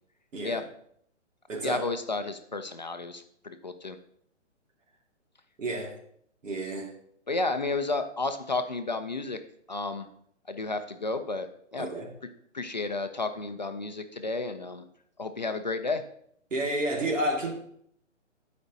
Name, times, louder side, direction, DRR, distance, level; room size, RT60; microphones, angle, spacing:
voice 1, 0.3-0.6 1.5-1.8 5.6-6.0 6.4-6.9 11.8-12.1 16.5-17.5, right 1 dB, 85° right, 2.1 m, -30 dB
voice 2, 1.6-4.0 7.3-9.4 9.7-10.1 10.5-11.9 12.5-14.8 15.2-16.0, left 3 dB, 40° left, 0.4 m, -32 dB
15.0 x 5.1 x 2.7 m
hypercardioid pair, 175°, 37 cm